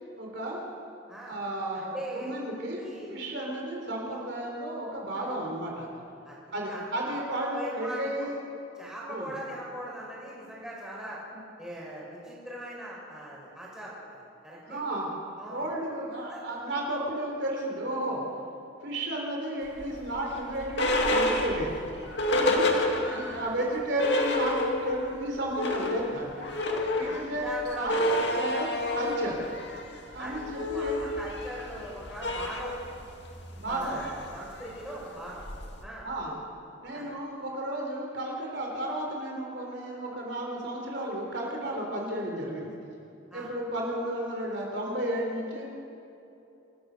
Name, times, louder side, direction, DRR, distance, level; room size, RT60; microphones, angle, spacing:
voice 1, 0.2-0.6 1.3-2.8 3.1-5.9 6.5-8.4 9.1-9.4 14.7-15.1 15.4-18.2 18.8-21.8 22.4-22.7 22.9-26.5 26.9-29.4 30.1-31.0 33.6-34.0 36.0-36.4 36.8-42.7 43.3-45.6, right 1 dB, 60° right, -1 dB, 4.1 m, -33 dB
voice 2, 1.7-2.3 2.8-3.1 5.2-5.3 6.3-6.4 6.6-6.9 7.1-7.2 7.5-8.3 8.8-11.2 11.6-14.8 15.4-15.7 16.3-16.6 22.6-23.6 27.0-28.1 30.2-30.4 30.7-32.7 33.7-35.4 35.8-36.1 36.9-37.1 43.3-43.5, right 1 dB, 5° right, -5 dB, 5.3 m, -40 dB
sound 1, 19.7-23.4 23.7-23.8 24.0-25.1 25.4-35.8, left 1 dB, 55° left, 2.4 m, -29 dB
28.0 x 15.0 x 6.8 m, 2.8 s
head